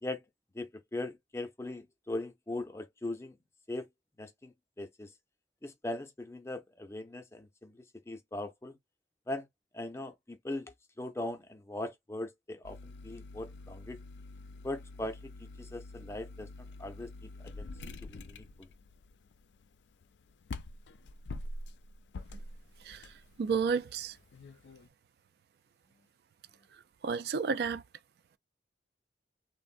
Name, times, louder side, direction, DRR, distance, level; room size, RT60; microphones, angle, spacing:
voice 1, 0.5-3.4 3.7-3.8 4.2-5.1 5.6-7.8 8.1-8.8 9.3-9.5 9.7-14.0 14.6-15.3 15.6-16.5 16.8-17.7 18.0-18.7, left 2 dB, 15° left, 0.5 m, -40 dB
sound 1, 12.6-24.9, left 2 dB, 80° left, 0.4 m, -47 dB
voice 2, 23.4-24.1 27.0-27.8, right 5 dB, 60° right, 0.3 m, -31 dB
3.4 x 2.1 x 2.5 m
head